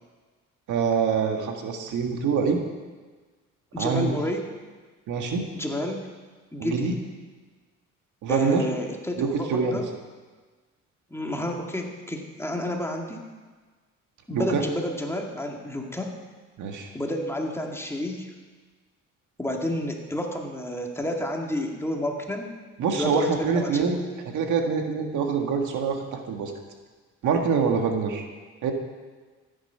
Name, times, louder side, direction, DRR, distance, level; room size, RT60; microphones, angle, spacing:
voice 1, 0.7-2.6 3.8-4.1 5.1-5.5 6.6-6.9 8.2-8.6 9.2-9.8 14.3-14.6 16.6-16.9 22.8-24.0 24.3-26.5 27.2-28.3 28.6-28.7, right 5 dB, 80° right, 3 dB, 1.8 m, -25 dB
voice 2, 3.7-4.4 5.5-6.1 6.5-7.0 8.3-9.9 11.1-13.2 14.3-16.1 16.9-18.3 19.4-22.5 22.9-24.0, left 1 dB, 10° left, 1 dB, 2.0 m, -30 dB
14.0 x 9.7 x 5.6 m, 1.4 s
cardioid pair, 90°, 30 cm